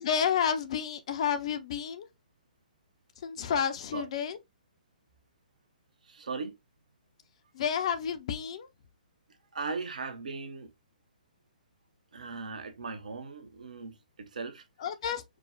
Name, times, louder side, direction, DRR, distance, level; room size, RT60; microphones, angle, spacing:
voice 1, 0.0-2.1 3.2-4.4 7.5-8.7 14.8-15.4, left 8 dB, 45° left, 0.7 m, -30 dB
voice 2, 6.0-6.5 9.5-10.7 12.1-14.6, right 4 dB, 60° right, 0.9 m, -38 dB
4.8 x 2.2 x 3.7 m
figure-of-eight pair, 125°, 5 cm